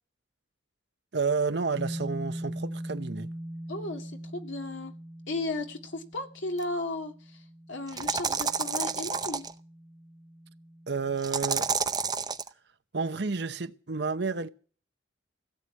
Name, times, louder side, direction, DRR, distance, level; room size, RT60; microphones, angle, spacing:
voice 1, 1.1-3.3 10.9-11.7 12.9-14.5, right 4 dB, 60° right, 0.8 m, -30 dB
sound 1, 1.7-11.2, right 1 dB, ahead, 5.6 m, -41 dB
voice 2, 3.7-5.0 5.3-7.4 7.7-9.4, left 2 dB, 80° left, 2.3 m, -35 dB
sound 2, 6.6-6.7 7.9-9.5 11.2-12.5, right 5 dB, 20° right, 0.6 m, -29 dB
16.5 x 7.9 x 9.6 m
head